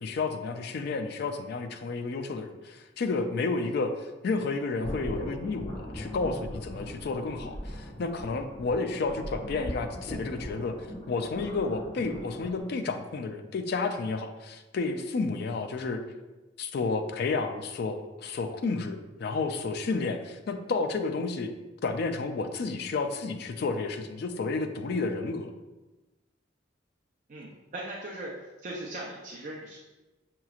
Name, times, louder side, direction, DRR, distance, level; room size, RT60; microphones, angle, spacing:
voice 1, 0.0-3.9 4.2-10.8 11.1-16.0 16.6-21.5 21.8-25.5, left 3 dB, 60° left, 7 dB, 0.4 m, -31 dB
sound 1, 4.8-12.6, equal, 30° left, 1.3 m, -40 dB
voice 2, 27.3-28.3 28.6-29.9, right 1 dB, 45° right, -4 dB, 0.5 m, -39 dB
5.8 x 3.0 x 2.4 m, 1.1 s
head